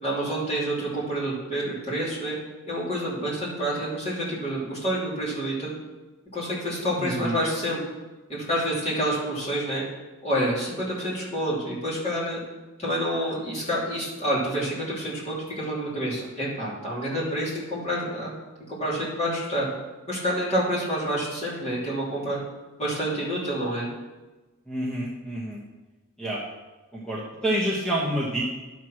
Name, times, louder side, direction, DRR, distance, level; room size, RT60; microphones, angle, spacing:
voice 1, 0.0-2.3 2.7-5.7 6.3-7.8 8.3-9.8 10.2-12.4 12.8-18.3 18.7-19.7 20.1-22.4 22.8-23.9, equal, 30° left, -7 dB, 3.2 m, -28 dB
voice 2, 7.0-7.3 24.7-25.6 26.2-26.4 26.9-28.5, right 1 dB, 5° left, -6 dB, 1.1 m, -28 dB
11.0 x 4.7 x 6.1 m, 1.2 s
head